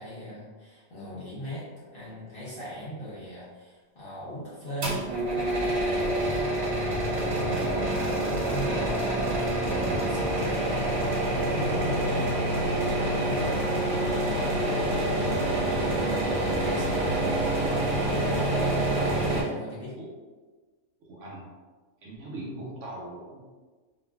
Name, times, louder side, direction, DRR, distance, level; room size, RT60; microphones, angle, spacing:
voice 1, 0.0-11.1 11.5-12.3 12.9-18.8 19.1-19.9, equal, 45° left, -9 dB, 0.8 m, -39 dB
sound 1, 4.8-19.4, right 1 dB, 85° right, 1.3 m, -27 dB
voice 2, 11.7-12.3 20.0-20.1 21.1-21.5 22.0-23.4, right 1 dB, 65° right, -4 dB, 0.9 m, -41 dB
2.9 x 2.4 x 2.2 m, 1.3 s
omnidirectional pair, 1.5 m